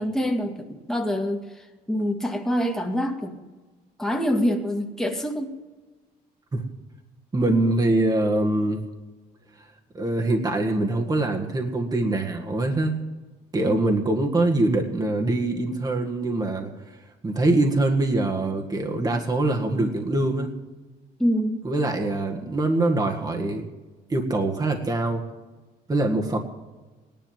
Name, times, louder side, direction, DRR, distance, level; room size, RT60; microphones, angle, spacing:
voice 1, 0.0-3.4 4.0-5.5 13.7-13.8 21.2-21.6, equal, 5° left, 2 dB, 2.0 m, -26 dB
voice 2, 7.3-8.8 9.9-13.0 13.5-16.7 17.2-20.5 21.6-23.7 24.1-25.2 25.9-26.4, right 2 dB, 20° right, 2 dB, 1.8 m, -23 dB
18.0 x 10.5 x 7.5 m, 1.2 s
cardioid pair, 110°, 17 cm